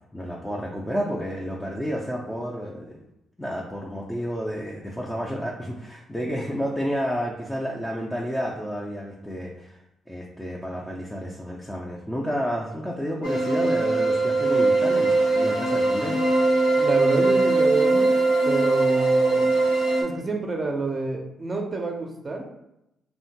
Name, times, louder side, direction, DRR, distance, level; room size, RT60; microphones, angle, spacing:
voice 1, 0.0-3.0 3.4-9.8 10.1-16.2, equal, 10° left, -3 dB, 0.5 m, -30 dB
sound 1, 13.2-20.0, right 3 dB, 90° left, 0.7 m, -21 dB
voice 2, 16.8-18.1 18.4-19.4 20.0-22.5, right 3 dB, 35° right, 2 dB, 0.5 m, -28 dB
2.8 x 2.2 x 2.8 m, 0.87 s
hypercardioid pair, 45°, 0 cm